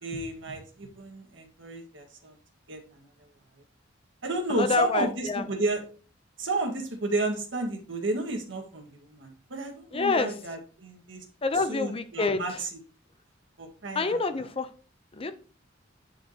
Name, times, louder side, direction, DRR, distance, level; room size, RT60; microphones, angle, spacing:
voice 1, 0.0-2.3 2.7-3.0 4.2-5.8 6.4-11.2 11.7-12.7 13.6-14.2, right 2 dB, 70° right, 3 dB, 1.7 m, -32 dB
voice 2, 4.5-5.4 9.9-10.3 11.4-12.6 13.9-14.7 15.1-15.3, left 4 dB, 30° left, 10 dB, 0.6 m, -27 dB
11.0 x 4.8 x 2.9 m, 0.40 s
head